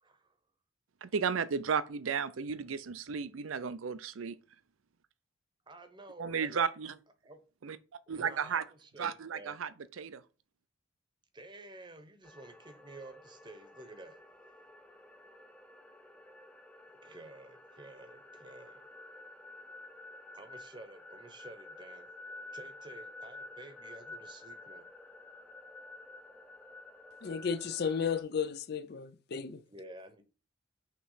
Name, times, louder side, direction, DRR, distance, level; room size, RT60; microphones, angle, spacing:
voice 1, 0.0-0.4 5.7-6.6 7.2-7.4 8.1-9.6 11.3-14.2 17.0-18.8 20.3-22.1 22.5-24.9 29.7-30.2, right 2 dB, 25° right, 0.9 m, -51 dB
voice 2, 1.0-4.4 6.2-7.0 7.6-7.8 8.1-8.6 9.0-9.7 10.0-10.2, right 6 dB, 85° right, 0.5 m, -33 dB
sound 1, 12.2-28.2, left 2 dB, 5° left, 0.6 m, -51 dB
voice 3, 27.2-29.6, left 6 dB, 55° left, 0.4 m, -34 dB
5.9 x 3.1 x 5.6 m
head